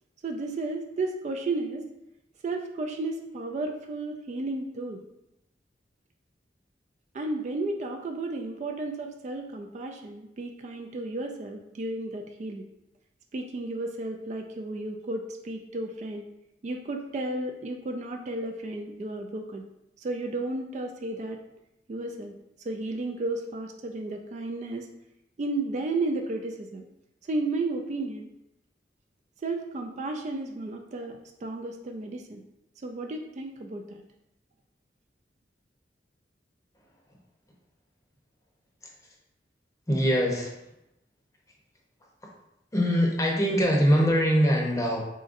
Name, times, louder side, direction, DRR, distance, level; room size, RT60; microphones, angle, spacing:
voice 1, 0.2-1.9 2.4-5.0 7.1-12.6 13.3-16.3 16.6-19.6 20.0-21.4 21.9-24.9 25.4-26.8 27.3-28.3 29.4-32.4 32.8-34.0, right 2 dB, 40° right, 4 dB, 0.3 m, -33 dB
voice 2, 39.9-40.5 42.2-42.3 42.7-45.0, equal, 20° left, -1 dB, 0.7 m, -23 dB
4.0 x 3.7 x 2.5 m, 0.85 s
head